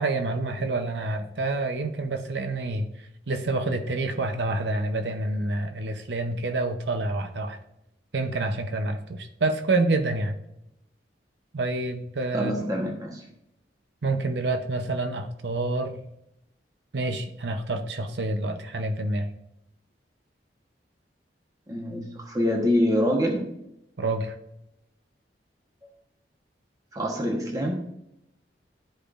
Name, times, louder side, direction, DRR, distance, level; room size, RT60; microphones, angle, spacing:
voice 1, 0.0-7.6 8.1-10.4 11.5-12.5 14.0-16.0 16.9-19.3 24.0-24.3, right 2 dB, 80° right, 6 dB, 0.7 m, -28 dB
voice 2, 12.3-13.2 21.7-23.5 26.9-27.8, equal, 20° right, 1 dB, 1.0 m, -25 dB
13.0 x 5.0 x 2.5 m, 0.81 s
head